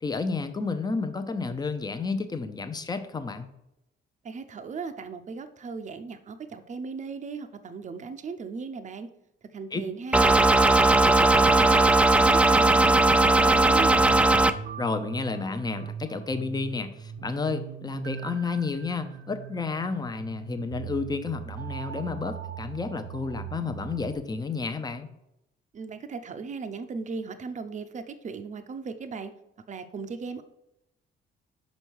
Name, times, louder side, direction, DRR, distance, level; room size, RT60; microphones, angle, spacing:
voice 1, 0.0-3.5 9.7-9.8 14.8-25.1, left 4 dB, 20° left, 8 dB, 0.7 m, -31 dB
voice 2, 4.2-9.1 9.5-14.1 25.7-29.3 29.7-30.4, right 5 dB, 35° right, 8 dB, 0.6 m, -37 dB
sound 1, 10.1-14.5, right 2 dB, 5° right, 0.3 m, -18 dB
sound 2, 13.8-24.2, right 9 dB, 80° right, 0.7 m, -40 dB
5.4 x 5.3 x 4.6 m, 0.85 s
cardioid pair, 90°, 20 cm